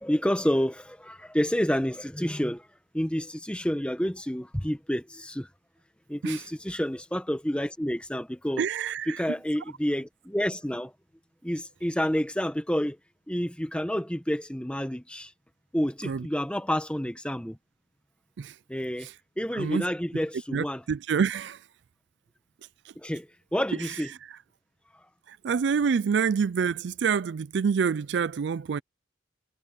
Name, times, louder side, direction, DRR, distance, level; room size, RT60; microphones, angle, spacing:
voice 1, 0.0-2.7 2.9-5.5 6.1-8.6 9.1-10.9 11.4-13.0 13.3-15.3 15.7-17.6 18.7-19.1 19.4-20.8 23.0-24.1, equal, 5° left, 1.4 m, -29 dB
voice 2, 8.6-9.3 16.0-16.3 18.4-18.6 19.0-19.1 19.5-19.8 20.5-21.6 22.8-22.9 23.8-24.0 24.3-24.4 25.3-28.8, right 6 dB, 60° right, 0.4 m, -27 dB
head